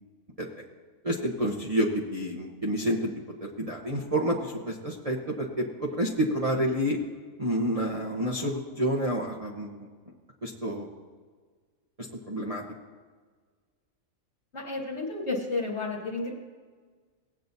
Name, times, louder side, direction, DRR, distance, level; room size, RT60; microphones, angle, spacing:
voice 1, 1.0-3.1 3.6-7.0 7.4-9.8 10.4-10.9 12.3-12.6, equal, 30° right, -4 dB, 1.0 m, -29 dB
voice 2, 14.5-16.3, left 3 dB, 55° left, -2 dB, 1.7 m, -31 dB
17.5 x 8.6 x 2.7 m, 1.5 s
omnidirectional pair, 1.4 m